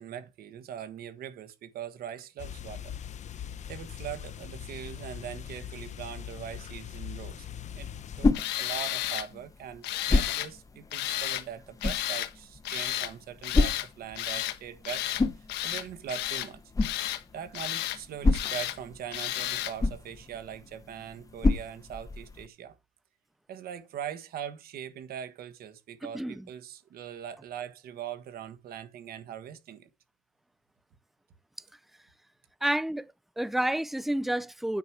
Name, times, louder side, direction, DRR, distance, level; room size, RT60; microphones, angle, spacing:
voice 1, 0.0-2.9 3.7-7.5 7.7-7.9 8.2-8.3 8.6-15.1 15.6-16.6 17.3-22.7 23.5-29.9, right 9 dB, 65° right, 1.4 m, -41 dB
sound 1, 2.4-8.3, left 9 dB, 45° left, 0.7 m, -41 dB
sound 2, 7.6-22.5, left 3 dB, 20° left, 0.9 m, -32 dB
Tools, 8.3-9.3 9.8-10.5 10.9-11.4 11.8-12.3 12.6-13.1 13.4-13.9 14.2-14.6 14.9-15.2 15.5-16.5 16.8-17.2 17.5-18.0 18.3-18.8 19.1-19.7, left 14 dB, 90° left, 1.1 m, -32 dB
voice 2, 26.1-26.5 32.6-34.8, right 1 dB, ahead, 0.4 m, -30 dB
9.5 x 4.6 x 5.8 m
cardioid pair, 110°, 17 cm